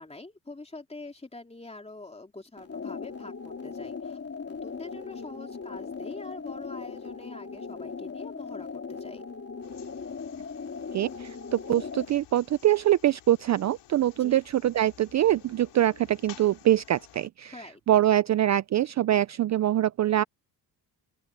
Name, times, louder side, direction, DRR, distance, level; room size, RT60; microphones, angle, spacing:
voice 1, 0.0-4.2 4.4-9.2 14.1-14.4 17.5-17.8, left 2 dB, 15° left, 3.3 m, -45 dB
sound 1, 2.6-12.2, left 5 dB, 35° left, 3.1 m, -38 dB
sound 2, 9.6-17.3, left 12 dB, 80° left, 3.1 m, -53 dB
voice 2, 10.9-17.5 17.9-20.2, right 12 dB, 45° right, 0.4 m, -24 dB
open air
cardioid pair, 100°, 41 cm